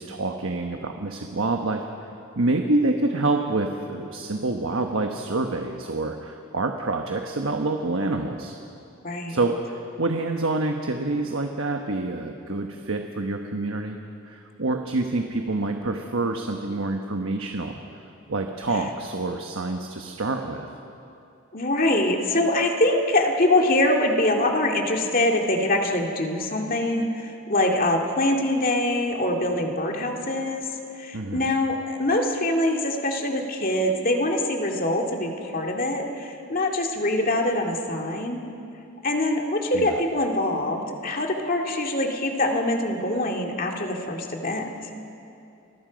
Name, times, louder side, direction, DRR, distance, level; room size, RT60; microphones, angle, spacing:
voice 1, 0.0-1.8 2.4-8.5 9.3-14.0 14.3-18.0 18.3-20.7 31.1-31.5 39.7-39.9, right 2 dB, 65° right, 4 dB, 1.2 m, -27 dB
voice 2, 9.0-9.4 21.5-30.7 31.0-38.4 39.0-44.7, left 1 dB, 40° left, 2 dB, 2.3 m, -24 dB
29.5 x 21.5 x 5.2 m, 2.7 s
head